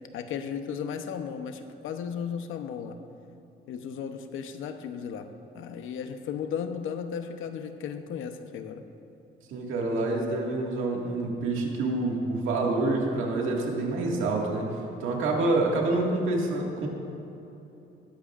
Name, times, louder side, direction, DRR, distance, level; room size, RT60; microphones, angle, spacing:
voice 1, 0.1-3.0 3.7-5.3 5.5-8.8, left 7 dB, 85° left, 7 dB, 0.9 m, -35 dB
voice 2, 9.5-16.9, right 2 dB, 90° right, -1 dB, 2.0 m, -27 dB
19.0 x 13.0 x 2.5 m, 3.0 s
cardioid pair, 90°, 20 cm